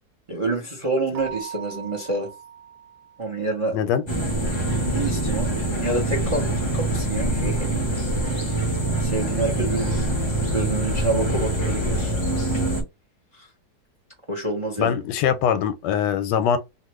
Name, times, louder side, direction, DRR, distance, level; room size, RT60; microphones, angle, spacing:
voice 1, 0.3-2.3 3.2-3.8 4.8-7.8 8.3-8.5 9.0-10.1 10.5-12.1 13.3-13.5 14.3-15.0, right 2 dB, 30° right, 0.6 m, -28 dB
Keyboard (musical), 1.1-3.6, right 9 dB, 70° right, 0.8 m, -39 dB
voice 2, 3.7-4.0 14.8-16.6, left 8 dB, 90° left, 1.2 m, -22 dB
sound 1, 4.1-12.8, right 1 dB, 40° left, 0.4 m, -24 dB
2.9 x 2.5 x 3.0 m
omnidirectional pair, 1.8 m